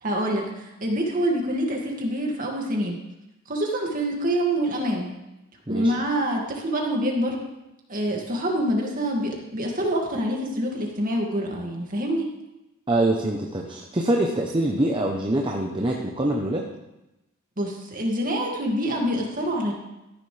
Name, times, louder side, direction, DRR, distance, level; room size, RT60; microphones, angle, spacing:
voice 1, 0.0-3.0 3.5-5.1 5.7-7.4 7.9-12.3 17.6-19.7, equal, 40° right, 0 dB, 2.2 m, -26 dB
voice 2, 12.9-16.7, right 1 dB, 25° right, 0 dB, 0.9 m, -24 dB
14.5 x 10.5 x 3.4 m, 0.96 s
head